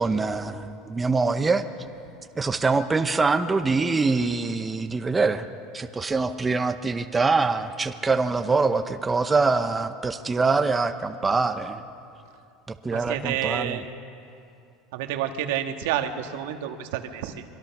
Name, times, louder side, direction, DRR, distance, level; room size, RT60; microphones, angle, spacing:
voice 1, 0.0-1.7 2.4-5.5 5.7-11.8 12.8-13.8, right 4 dB, 15° right, 8 dB, 0.8 m, -24 dB
voice 2, 12.9-13.9 14.9-17.4, right 10 dB, 80° right, 6 dB, 1.7 m, -29 dB
25.5 x 23.5 x 6.0 m, 2.6 s
supercardioid pair, 150°, 0 cm